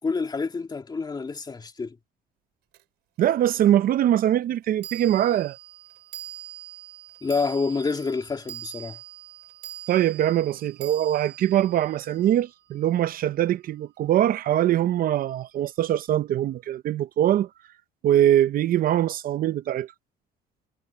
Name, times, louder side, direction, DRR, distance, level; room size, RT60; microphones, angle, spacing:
voice 1, 0.0-2.0 7.2-9.0, left 4 dB, 25° left, 2.8 m, -28 dB
sound 1, 2.7-2.8 4.8-13.3, right 12 dB, 85° right, 5.2 m, -43 dB
voice 2, 3.2-5.6 9.9-17.5 18.0-19.9, right 12 dB, 60° right, 0.7 m, -22 dB
cardioid pair, 110°, 17 cm